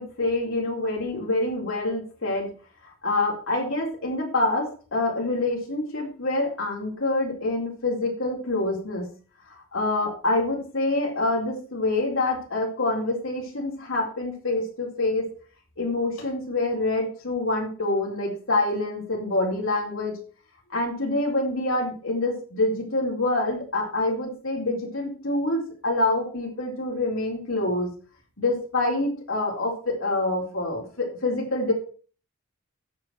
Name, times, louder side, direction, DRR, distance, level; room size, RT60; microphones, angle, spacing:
voice 1, 0.0-2.5 3.0-9.1 9.7-15.3 15.8-20.2 20.7-27.9 28.4-31.7, left 2 dB, 70° left, -2 dB, 4.2 m, -26 dB
10.5 x 7.3 x 5.8 m, 0.39 s
head